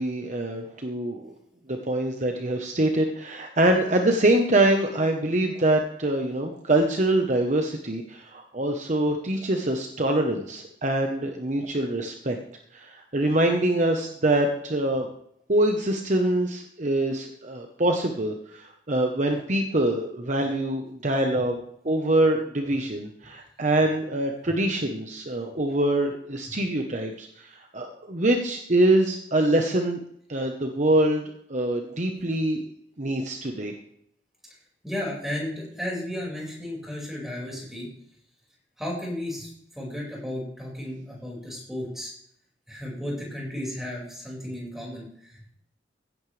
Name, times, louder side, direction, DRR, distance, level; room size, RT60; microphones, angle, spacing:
voice 1, 0.0-1.3 1.7-12.4 12.7-15.1 15.5-21.6 21.8-30.0 30.3-32.6 33.0-33.7, right 1 dB, 40° right, 4 dB, 1.1 m, -24 dB
voice 2, 34.8-37.9 38.8-42.1 42.7-45.5, left 1 dB, ahead, -3 dB, 5.4 m, -34 dB
16.0 x 11.0 x 3.4 m, 0.69 s
head